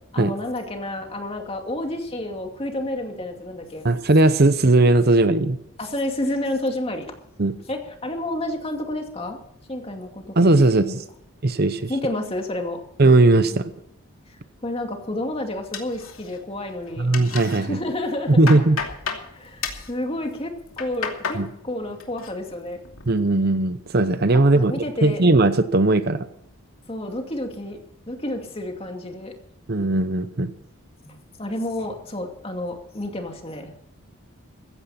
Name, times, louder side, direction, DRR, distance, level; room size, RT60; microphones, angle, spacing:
voice 1, 0.1-3.9 5.8-7.1 7.7-9.4 9.7-10.9 11.9-12.8 14.3-17.1 17.6-18.6 19.3-22.8 24.3-25.2 26.9-29.3 31.0-33.7, left 1 dB, 25° left, 3 dB, 2.3 m, -30 dB
voice 2, 3.8-5.6 7.4-7.5 10.4-11.0 11.4-11.9 13.0-13.7 17.0-17.8 18.3-18.8 21.3-21.5 23.1-24.7 25.0-26.3 29.7-30.5, right 2 dB, 45° right, 12 dB, 0.8 m, -18 dB
sound 1, 15.7-16.6 16.9-17.6 18.0-19.3 19.6-19.9 20.5-21.4 21.8-22.3 22.7-23.1, left 5 dB, 70° left, 2.7 m, -32 dB
15.5 x 15.5 x 4.3 m, 0.77 s
head